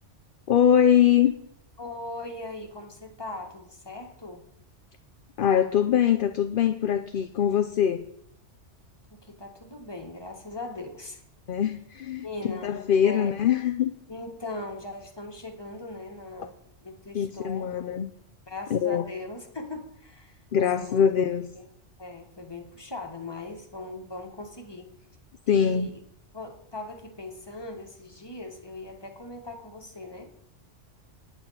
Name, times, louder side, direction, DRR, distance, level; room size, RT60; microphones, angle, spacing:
voice 1, 0.5-1.3 5.4-8.1 11.5-13.9 17.1-18.1 18.7-19.0 20.5-21.5 25.5-25.9, left 9 dB, 55° left, 9 dB, 0.7 m, -23 dB
voice 2, 1.8-4.4 9.1-11.2 12.2-12.7 13.0-13.3 14.1-16.5 16.8-17.7 18.5-20.4 20.7-21.1 21.5-21.6 22.0-24.9 25.5-26.0 26.3-30.3, left 2 dB, 20° left, 2 dB, 1.6 m, -39 dB
9.6 x 9.0 x 5.7 m, 0.74 s
omnidirectional pair, 1.3 m